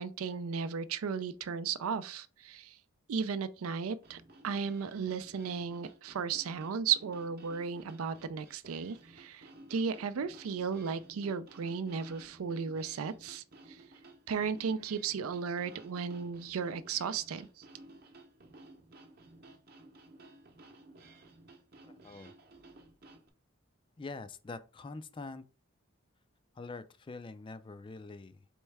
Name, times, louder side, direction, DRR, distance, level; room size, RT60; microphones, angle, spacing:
voice 1, 0.0-2.8 3.1-13.8 14.3-17.6, right 6 dB, 80° right, 0.4 m, -35 dB
sound 1, 4.0-23.3, right 2 dB, 45° right, 0.8 m, -56 dB
voice 2, 21.9-22.3 24.0-25.4 26.5-28.5, left 3 dB, 25° left, 0.3 m, -45 dB
4.5 x 3.1 x 3.3 m
head